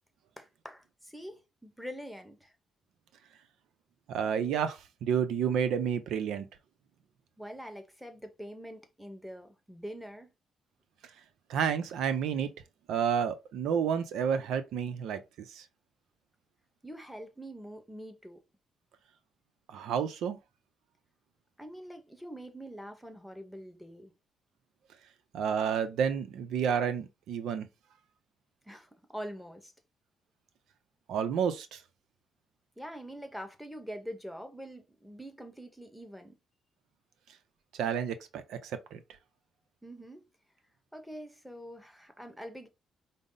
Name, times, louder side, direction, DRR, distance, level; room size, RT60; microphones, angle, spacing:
voice 1, 0.4-2.5 7.4-10.3 16.8-18.4 21.6-24.1 28.6-29.7 32.8-36.4 39.8-40.2 40.9-42.7, equal, ahead, 1.0 m, -44 dB
voice 2, 4.1-6.5 11.5-12.5 12.9-15.2 15.5-15.6 19.7-20.4 25.3-27.7 31.1-31.8 37.7-39.0, right 7 dB, 80° right, 0.5 m, -30 dB
5.2 x 2.0 x 3.8 m
cardioid pair, 90°, 0 cm